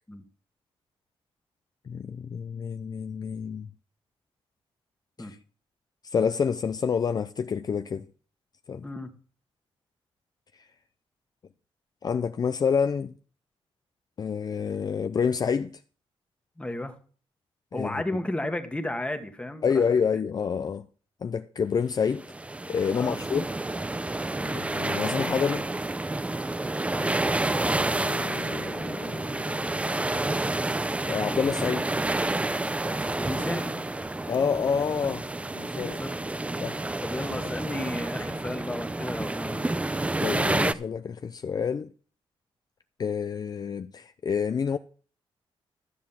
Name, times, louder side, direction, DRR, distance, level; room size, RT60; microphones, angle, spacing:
voice 1, 1.9-3.7 5.2-5.4 6.0-8.1 8.7-8.9 10.5-10.7 12.0-13.1 14.2-15.8 17.7-17.9 19.6-20.9 21.2-22.2 22.7-23.5 24.5-25.7 27.8-29.4 31.1-31.9 34.3-35.2 35.5-36.0 36.6-36.9 40.2-41.9 43.0-44.8, left 6 dB, 40° left, 0.5 m, -28 dB
voice 2, 16.6-16.9 17.7-19.8 22.9-23.2 24.3-24.6 26.9-27.9 32.8-33.8 35.8-36.4 37.0-40.2, left 1 dB, 10° left, 1.5 m, -34 dB
sound 1, 22.2-40.7, right 2 dB, 15° right, 0.6 m, -29 dB
13.0 x 7.3 x 5.8 m
wide cardioid pair, 125°, 10 cm